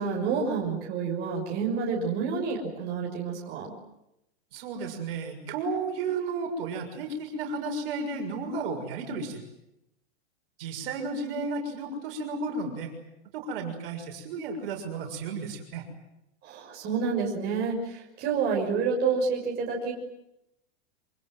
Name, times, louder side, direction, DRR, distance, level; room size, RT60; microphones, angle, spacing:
voice 1, 0.0-3.7 16.4-19.9, right 5 dB, 30° right, -1 dB, 6.3 m, -29 dB
voice 2, 4.5-9.4 10.6-12.9 13.3-15.8, right 3 dB, 55° right, 3 dB, 6.7 m, -33 dB
28.0 x 26.0 x 7.8 m, 0.84 s
supercardioid pair, 150°, 33 cm